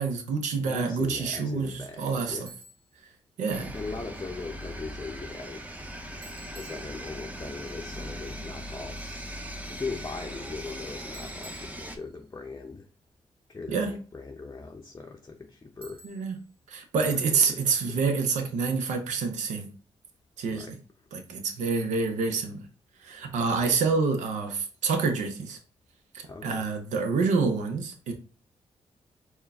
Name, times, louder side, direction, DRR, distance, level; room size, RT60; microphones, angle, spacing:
voice 1, 0.0-2.5 3.4-3.7 13.7-13.9 16.0-16.3 16.7-19.7 20.4-20.7 21.1-22.6 23.0-25.6 26.1-28.1, right 4 dB, 85° right, 0.6 m, -27 dB
voice 2, 0.6-2.5 3.7-5.7 6.5-9.2 9.7-12.9 13.5-16.0 17.0-17.6 17.9-18.0 20.5-20.7 23.5-23.7 26.2-26.7, left 4 dB, 25° left, 0.6 m, -39 dB
Bicycle, 2.5-3.0 6.2-7.4 11.1-12.4 15.8-16.5, right 1 dB, 50° right, 1.3 m, -51 dB
sound 1, 3.5-12.0, equal, 10° right, 0.6 m, -39 dB
4.5 x 2.2 x 3.4 m
cardioid pair, 60°, 12 cm